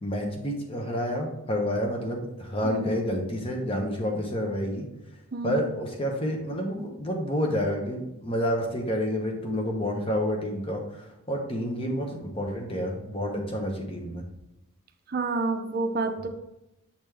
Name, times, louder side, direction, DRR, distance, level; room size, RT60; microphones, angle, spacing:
voice 1, 0.0-4.9 5.4-14.2 16.2-16.3, equal, 25° left, 1 dB, 1.0 m, -29 dB
voice 2, 15.1-16.3, right 3 dB, 45° right, 6 dB, 0.5 m, -28 dB
7.2 x 4.1 x 3.4 m, 0.92 s
head